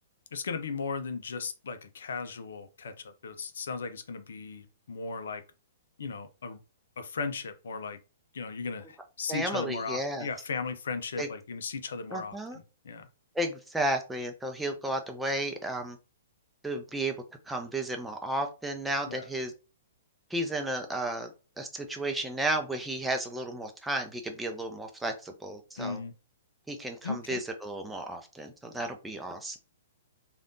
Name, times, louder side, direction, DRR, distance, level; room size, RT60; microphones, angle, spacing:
voice 1, 0.3-5.4 6.0-6.6 7.0-8.0 8.3-13.1 19.1-19.3 25.8-26.1 27.0-27.4, left 4 dB, 65° left, 9 dB, 0.5 m, -36 dB
voice 2, 9.3-10.3 11.2-11.3 12.1-12.6 13.3-16.0 16.6-17.1 17.5-19.5 20.3-21.3 21.6-26.0 26.7-29.6, right 1 dB, 5° right, 4 dB, 0.5 m, -33 dB
3.3 x 2.4 x 2.6 m, 0.32 s
figure-of-eight pair, 115°, 0 cm